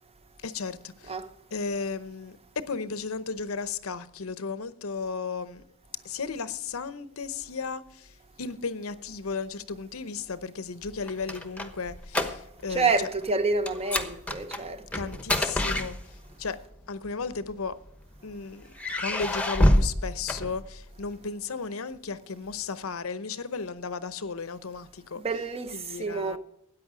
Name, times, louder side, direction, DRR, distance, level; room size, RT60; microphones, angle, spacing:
voice 1, 0.4-1.1 1.5-5.6 6.0-13.1 14.9-15.9 16.4-16.6 16.9-17.7 18.2-25.2 25.7-26.4, left 5 dB, 75° left, 0.8 m, -35 dB
sound 1, 10.9-12.8 13.0-13.3 13.7-16.4 17.3-18.2 18.7-21.0, left 1 dB, 5° left, 1.0 m, -27 dB
voice 2, 12.7-15.1 25.2-26.4, right 4 dB, 30° right, 1.0 m, -28 dB
13.5 x 9.4 x 5.0 m
head